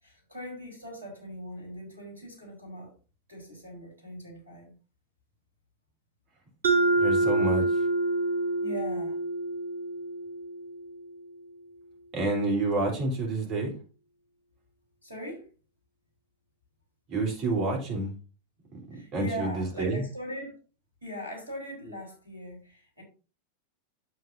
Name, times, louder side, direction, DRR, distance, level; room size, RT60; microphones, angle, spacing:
voice 1, 0.0-2.9 3.3-4.7 8.6-9.2 15.0-15.5 18.9-20.5 21.0-23.0, equal, 85° right, -1 dB, 4.5 m, -40 dB
Mallet percussion, 6.6-11.2, right 2 dB, 65° right, 1.4 m, -27 dB
voice 2, 7.0-7.8 12.1-13.7 17.1-18.1 19.1-20.0, right 2 dB, 40° right, 0 dB, 3.8 m, -28 dB
9.1 x 7.6 x 2.8 m, 0.34 s
figure-of-eight pair, 90°, 0 cm